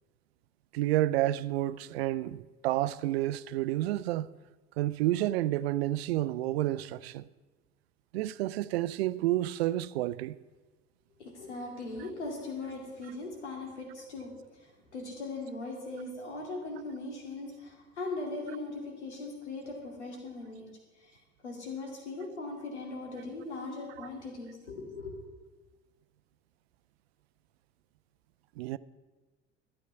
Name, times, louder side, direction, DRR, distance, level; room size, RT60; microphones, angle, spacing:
voice 1, 0.7-4.3 4.8-7.3 8.1-10.4 24.0-24.1 28.6-28.8, right 15 dB, 65° right, 0.5 m, -30 dB
voice 2, 11.2-20.7 21.0-25.1, left 3 dB, 80° left, 2.5 m, -40 dB
12.0 x 9.0 x 5.7 m
figure-of-eight pair, 60°, 34 cm